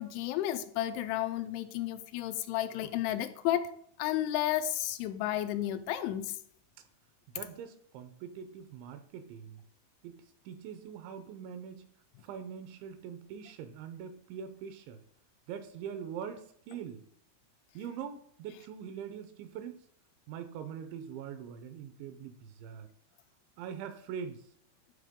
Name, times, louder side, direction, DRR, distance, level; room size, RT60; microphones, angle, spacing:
voice 1, 0.0-3.7 4.0-6.4, left 12 dB, 85° left, 2.9 m, -32 dB
voice 2, 7.3-9.6 10.0-10.2 10.5-11.9 12.2-15.0 15.5-17.0 17.7-19.9 20.3-22.9 23.6-24.5, right 8 dB, 80° right, 2.9 m, -43 dB
12.0 x 4.4 x 3.6 m
omnidirectional pair, 5.5 m